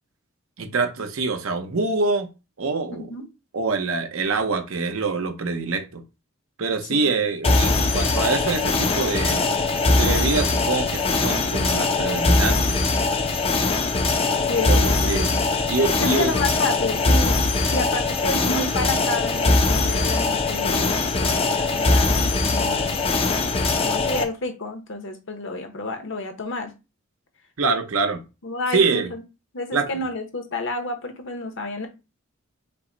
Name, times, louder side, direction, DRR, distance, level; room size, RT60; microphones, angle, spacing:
voice 1, 0.6-2.3 2.6-3.1 3.5-6.0 6.6-9.5 9.9-12.8 14.7-14.8 15.1-15.3 15.7-16.3 27.6-28.2 28.7-29.1 29.7-29.9, right 4 dB, 75° right, 0.8 m, -25 dB
voice 2, 2.9-3.3 6.9-7.2 14.4-15.4 16.1-23.1 23.8-26.7 28.4-29.2 29.5-31.9, left 2 dB, 60° left, 0.8 m, -30 dB
sound 1, 7.4-24.2, left 3 dB, 25° left, 0.5 m, -21 dB
5.5 x 2.1 x 3.8 m
head